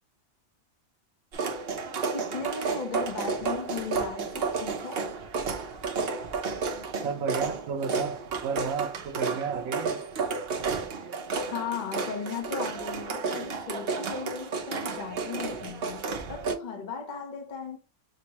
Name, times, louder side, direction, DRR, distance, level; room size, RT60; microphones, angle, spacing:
sound 1, 1.3-16.6, right 4 dB, 50° right, 0.8 m, -32 dB
voice 1, 2.1-5.1 11.4-17.8, left 6 dB, 40° left, 0.9 m, -37 dB
voice 2, 7.0-10.0, right 6 dB, 80° right, 1.2 m, -32 dB
6.2 x 2.2 x 2.9 m
omnidirectional pair, 1.5 m